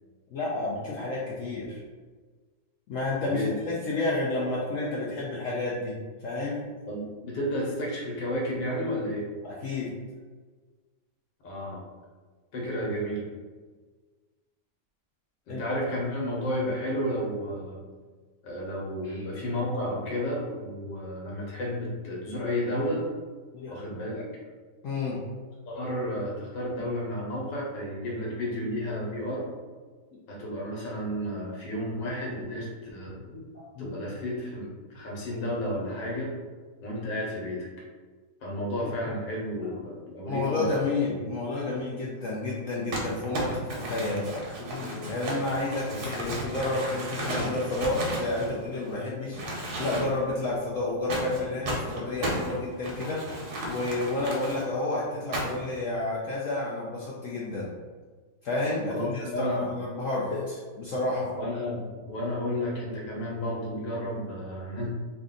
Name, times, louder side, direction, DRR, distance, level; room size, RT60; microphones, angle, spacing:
voice 1, 0.3-1.8 2.9-6.0 6.2-6.6 9.4-9.9 12.6-12.7 15.5-15.6 19.0-19.2 23.5-23.8 24.8-25.2 33.2-34.0 38.5-39.1 39.6-39.8 40.3-44.3 44.6-57.7 58.4-61.4, left 2 dB, 65° left, -5 dB, 0.8 m, -31 dB
voice 2, 3.2-3.5 6.9-9.3 11.4-11.8 12.5-13.2 15.5-17.8 18.4-23.0 23.7-24.3 25.7-29.4 30.3-33.2 33.8-36.3 36.8-37.7 38.4-40.7 41.1-41.2 45.9-46.0 58.9-59.7 61.4-64.9, equal, 80° left, -3 dB, 1.6 m, -32 dB
Crumpling crinkling, 42.9-48.9 49.3-50.3 51.1-54.6 55.3-55.7, right 1 dB, 65° right, 1.4 m, -34 dB
3.4 x 2.6 x 3.7 m, 1.4 s
omnidirectional pair, 1.9 m